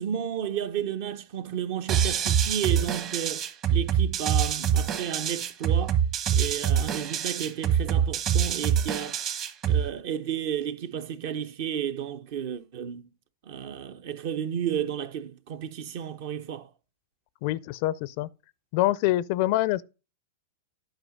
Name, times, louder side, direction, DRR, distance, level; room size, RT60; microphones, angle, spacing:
voice 1, 0.0-6.0 6.3-9.2 9.7-13.1 13.4-16.7, right 9 dB, 55° right, 0.8 m, -32 dB
sound 1, 1.9-9.9, right 8 dB, 40° right, 1.2 m, -25 dB
voice 2, 17.4-18.3 18.7-19.8, left 16 dB, 50° left, 0.4 m, -25 dB
9.1 x 5.1 x 5.2 m
hypercardioid pair, 115°, 0 cm